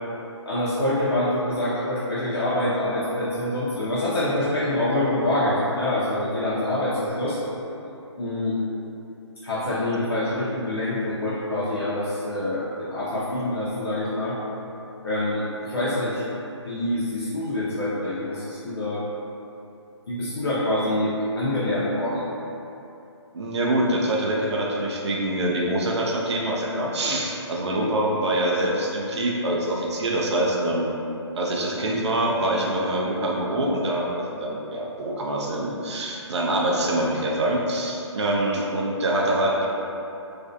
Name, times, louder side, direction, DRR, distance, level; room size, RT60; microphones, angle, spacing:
voice 1, 0.4-7.4 8.2-8.6 9.4-14.4 15.0-16.2 16.7-19.0 20.1-22.3, left 1 dB, 55° left, -10 dB, 0.5 m, -25 dB
voice 2, 23.3-30.9 31.4-39.7, right 1 dB, 65° right, -2 dB, 0.4 m, -25 dB
2.4 x 2.1 x 2.5 m, 2.8 s
hypercardioid pair, 175°, 15 cm